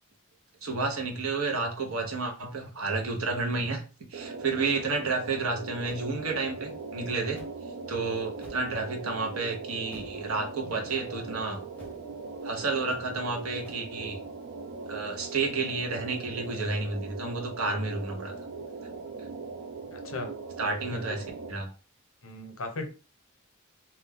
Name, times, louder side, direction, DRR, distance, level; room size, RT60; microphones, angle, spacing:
voice 1, 0.6-3.8 4.1-7.4 7.9-11.6 12.4-14.2 14.9-18.3 20.6-21.2 21.5-21.7, right 3 dB, 75° right, 2 dB, 0.8 m, -31 dB
sound 1, 4.1-21.5, right 4 dB, 55° right, 0.3 m, -40 dB
sound 2, 5.8-6.1 7.3-7.6 8.3-8.7 9.9-10.2 11.7-12.1 13.6-13.8, left 1 dB, 5° left, 0.5 m, -49 dB
voice 2, 19.9-20.3 20.9-21.0 22.2-22.9, left 2 dB, 70° left, 4 dB, 0.7 m, -37 dB
2.4 x 2.2 x 3.4 m, 0.34 s
head